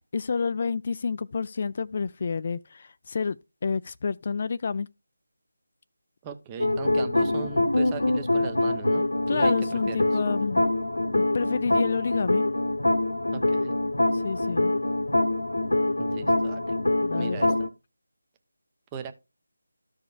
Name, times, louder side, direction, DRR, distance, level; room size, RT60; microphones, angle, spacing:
voice 1, 0.0-3.4 3.6-4.9 9.3-10.6 11.1-12.4 14.1-14.7 17.0-17.5, left 5 dB, 40° left, 0.3 m, -29 dB
voice 2, 6.2-10.2 13.3-13.7 16.0-16.8 17.2-17.7 18.9-19.1, right 6 dB, 15° right, 0.6 m, -38 dB
sound 1, 6.6-17.7, left 2 dB, 85° left, 1.1 m, -25 dB
14.0 x 5.0 x 2.5 m
figure-of-eight pair, 160°, 0 cm